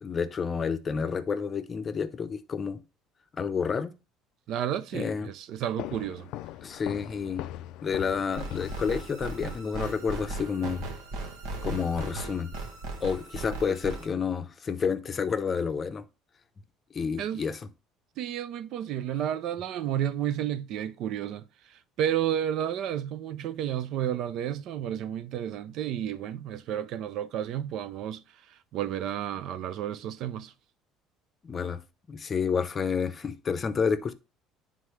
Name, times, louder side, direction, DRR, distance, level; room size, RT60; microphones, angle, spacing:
voice 1, 0.0-2.8 3.3-3.9 4.9-5.3 6.6-7.4 7.8-10.8 11.6-12.5 13.0-16.0 16.9-17.6 31.4-31.8 32.1-34.1, left 6 dB, 30° left, 0.6 m, -29 dB
voice 2, 4.5-6.3 17.2-17.5 18.2-30.5, right 10 dB, 60° right, 0.5 m, -32 dB
sound 1, 5.8-9.5, left 14 dB, 70° left, 0.3 m, -40 dB
Fight Music Synth Tense Loop, 8.3-14.1, right 2 dB, 80° right, 1.4 m, -37 dB
9.4 x 3.7 x 3.2 m
cardioid pair, 125°, 0 cm